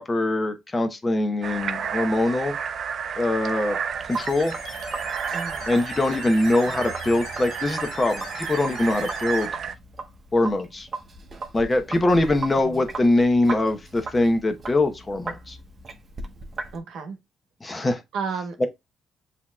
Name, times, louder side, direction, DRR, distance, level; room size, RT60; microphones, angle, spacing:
voice 1, 0.0-2.6 3.2-3.8 4.1-4.5 5.7-9.5 10.3-10.9 11.5-15.6 17.6-18.0, left 2 dB, 25° left, 0.9 m, -23 dB
sound 1, 1.4-9.7, right 7 dB, 60° right, 0.4 m, -32 dB
Sink (filling or washing), 3.9-16.8, right 3 dB, 40° right, 0.8 m, -38 dB
sound 2, 4.1-9.5, left 6 dB, 70° left, 0.9 m, -42 dB
voice 2, 5.3-5.7 12.6-12.8 16.7-17.2 17.8-17.9 18.1-18.7, right 5 dB, 75° right, 1.0 m, -33 dB
7.3 x 2.9 x 2.2 m
cardioid pair, 90°, 0 cm